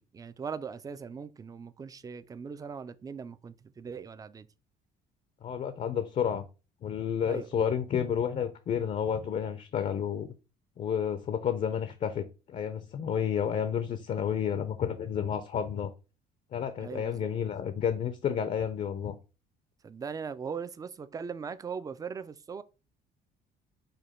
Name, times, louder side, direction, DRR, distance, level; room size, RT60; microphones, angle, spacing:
voice 1, 0.1-4.5 7.3-7.5 16.8-17.3 19.8-22.6, right 6 dB, 20° right, 0.3 m, -39 dB
voice 2, 5.4-6.4 6.8-10.3 10.8-15.9 16.5-19.1, left 8 dB, 45° left, 0.5 m, -31 dB
5.0 x 2.2 x 4.3 m
cardioid pair, 110°, 17 cm